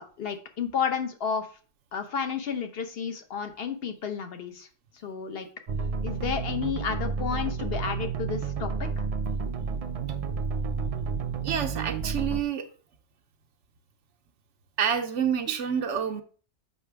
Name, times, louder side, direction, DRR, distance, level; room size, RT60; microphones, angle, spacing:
voice 1, 0.0-1.5 1.9-4.7 5.0-5.5 6.0-9.0, left 6 dB, 60° left, 7 dB, 1.1 m, -31 dB
sound 1, 5.7-12.4, right 5 dB, 45° right, 0.5 m, -31 dB
voice 2, 11.4-12.7 14.8-16.2, right 8 dB, 85° right, 5 dB, 1.1 m, -28 dB
7.0 x 5.7 x 3.4 m, 0.40 s
omnidirectional pair, 1.2 m